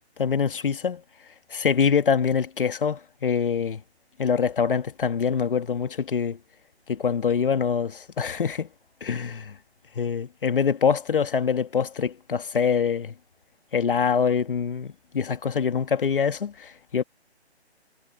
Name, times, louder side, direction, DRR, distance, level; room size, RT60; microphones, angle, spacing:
voice 1, 0.2-1.0 1.5-3.8 4.2-6.4 6.9-8.7 9.0-9.6 10.0-13.1 13.7-17.0, left 6 dB, 50° left, 2.1 m, -24 dB
hypercardioid pair, 160°, 34 cm